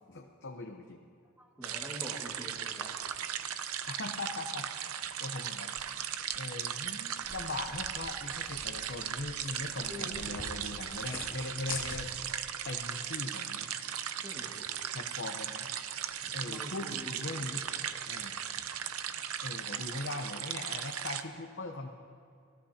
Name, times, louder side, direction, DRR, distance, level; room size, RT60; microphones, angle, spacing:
voice 1, 0.1-1.0 3.9-4.9 5.2-5.7 6.3-12.1 12.6-13.7 14.9-15.7 16.3-17.7 18.1-18.3 19.4-21.9, left 2 dB, 55° left, 2 dB, 0.9 m, -40 dB
voice 2, 1.4-2.9 9.9-10.2 14.2-14.7 16.2-18.0 18.5-19.0, equal, 10° right, -2 dB, 2.0 m, -47 dB
sound 1, 1.6-21.2, right 9 dB, 85° right, 0.7 m, -37 dB
sound 2, 7.2-12.4, left 3 dB, 20° left, 2.2 m, -45 dB
26.5 x 17.0 x 2.9 m, 2.3 s
head